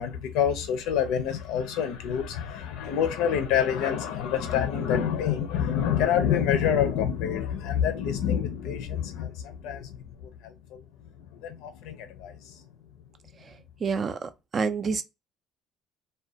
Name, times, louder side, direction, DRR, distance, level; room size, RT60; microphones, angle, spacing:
voice 1, 0.0-10.0 10.4-10.8 11.3-12.6, left 8 dB, 80° left, 0.5 m, -27 dB
voice 2, 13.8-15.0, right 5 dB, 30° right, 0.3 m, -28 dB
2.4 x 2.2 x 2.6 m
cardioid pair, 160°, 0 cm